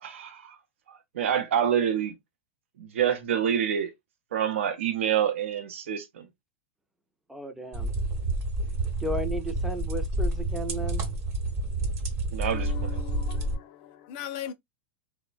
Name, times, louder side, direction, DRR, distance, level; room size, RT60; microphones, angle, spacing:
voice 1, 0.0-0.6 0.9-2.1 2.8-3.9 4.3-6.3 12.3-13.0, right 9 dB, 85° right, 0.6 m, -27 dB
voice 2, 7.3-7.9 9.0-11.0, right 1 dB, 5° right, 0.4 m, -34 dB
sound 1, 7.7-13.6, right 1 dB, 35° right, 0.9 m, -29 dB
voice 3, 12.5-14.5, left 10 dB, 50° left, 0.5 m, -39 dB
3.1 x 2.1 x 2.3 m
supercardioid pair, 135°, 7 cm